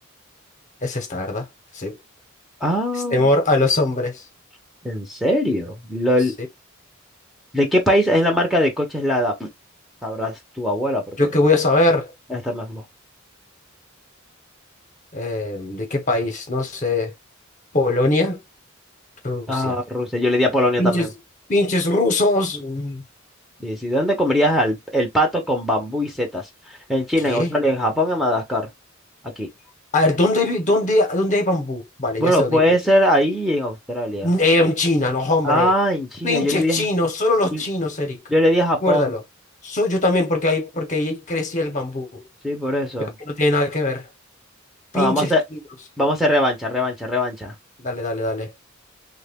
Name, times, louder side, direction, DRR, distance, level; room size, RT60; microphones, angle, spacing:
voice 1, 0.8-1.5 1.7-2.0 3.1-4.2 11.2-12.1 15.1-17.1 17.7-18.4 19.2-19.8 20.8-21.1 21.5-23.0 27.3-27.5 29.9-32.8 34.2-35.7 36.2-38.2 38.8-39.2 39.6-42.2 43.2-44.0 44.9-45.3 47.8-48.5, left 2 dB, 35° left, 0.9 m, -21 dB
voice 2, 2.6-3.3 4.8-6.3 7.5-9.5 10.0-11.0 12.3-12.8 19.5-21.1 23.6-28.7 29.4-29.5 32.2-34.3 35.4-36.9 37.5-37.6 38.3-39.2 42.4-43.1 44.9-45.4 46.0-47.5, equal, ahead, 0.7 m, -21 dB
3.2 x 2.2 x 3.5 m
head